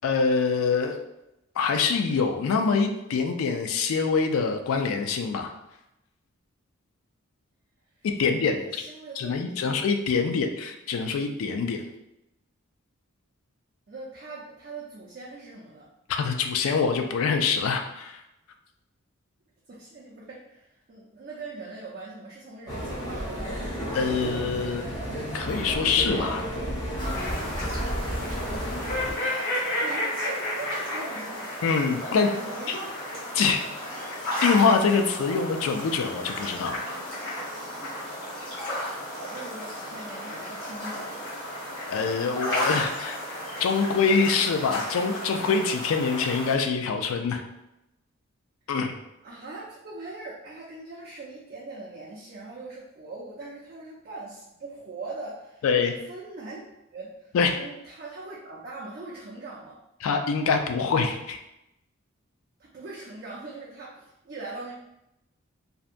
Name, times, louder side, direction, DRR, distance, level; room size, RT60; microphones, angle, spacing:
voice 1, 0.0-1.0 1.6-5.5 8.2-8.8 9.2-11.8 16.1-18.2 23.9-24.9 25.3-26.4 31.6-32.3 32.7-32.8 33.3-33.6 34.1-36.8 41.9-43.2 43.6-47.4 48.7-48.9 55.6-55.9 57.3-57.6 60.0-61.4, left 5 dB, 80° left, 5 dB, 0.3 m, -25 dB
voice 2, 8.2-9.8 10.4-10.6 13.9-15.9 19.7-23.8 29.1-31.5 32.1-33.0 39.1-41.3 49.2-56.6 56.9-59.8 62.6-64.7, right 3 dB, 45° right, -5 dB, 0.4 m, -41 dB
sound 1, 22.7-29.1, equal, 20° left, 0.5 m, -32 dB
sound 2, 27.0-46.5, left 1 dB, 55° left, 1.0 m, -33 dB
2.6 x 2.1 x 2.4 m, 0.88 s
head